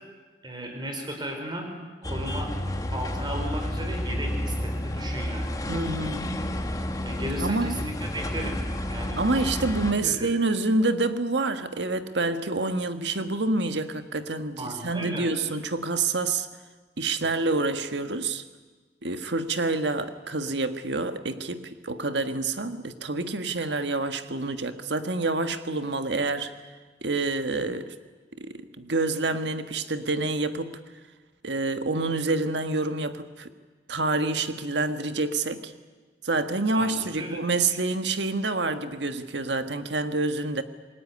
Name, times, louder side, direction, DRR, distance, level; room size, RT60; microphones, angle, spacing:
voice 1, 0.4-1.7 2.0-2.5 2.9-5.6 7.0-8.6 8.9-9.2 9.9-10.3 14.6-15.3 17.2-17.3 36.7-37.4, right 1 dB, 25° right, 4 dB, 5.1 m, -35 dB
sound 1, 2.0-9.9, left 1 dB, 20° left, 1.6 m, -31 dB
voice 2, 5.7-6.5 7.4-7.8 9.2-16.5 17.0-18.4 19.0-26.5 27.0-27.9 28.4-30.8 31.4-33.5 33.9-35.7 36.2-40.6, right 3 dB, 70° right, 9 dB, 1.6 m, -27 dB
27.0 x 21.0 x 9.7 m, 1.4 s
head